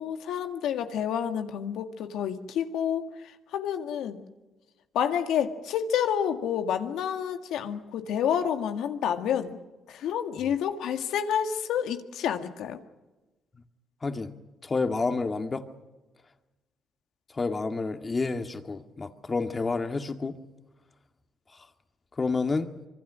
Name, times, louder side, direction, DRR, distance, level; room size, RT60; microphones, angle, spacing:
voice 1, 0.0-3.1 3.5-4.2 4.9-9.6 9.9-12.8, left 8 dB, 85° left, 1.9 m, -29 dB
voice 2, 14.0-14.3 14.6-15.7 17.3-20.4 22.2-22.7, left 3 dB, 30° left, 2.0 m, -29 dB
25.5 x 23.5 x 6.3 m
cardioid pair, 90°, 0 cm